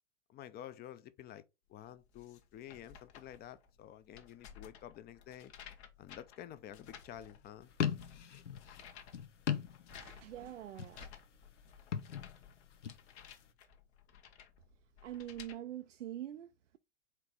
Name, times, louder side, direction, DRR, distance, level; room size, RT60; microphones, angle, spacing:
voice 1, 0.3-1.4 1.7-5.5 6.0-7.7, left 11 dB, 25° left, 0.5 m, -50 dB
sound 1, 1.8-15.6, left 8 dB, 65° left, 1.0 m, -56 dB
sound 2, 7.7-10.3 10.6-11.2 11.8-13.0, left 8 dB, 90° left, 0.6 m, -38 dB
voice 2, 9.9-11.1 15.0-16.8, right 12 dB, 85° right, 0.5 m, -45 dB
4.4 x 3.3 x 3.6 m
hypercardioid pair, 90°, 36 cm